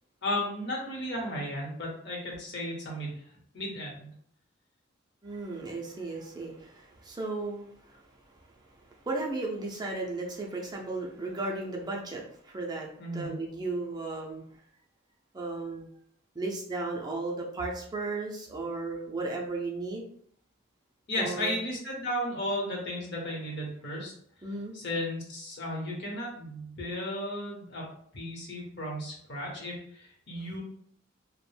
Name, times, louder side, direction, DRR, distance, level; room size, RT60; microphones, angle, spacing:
voice 1, 0.2-3.2 3.5-4.1 13.0-13.3 21.1-24.1 24.7-27.9 28.1-30.6, left 1 dB, 60° left, -1 dB, 0.9 m, -34 dB
voice 2, 5.2-8.2 8.4-14.4 15.3-15.9 16.4-20.0 21.2-21.6 24.4-24.7, right 3 dB, 20° right, -1 dB, 0.4 m, -35 dB
2.4 x 2.1 x 3.2 m, 0.64 s
head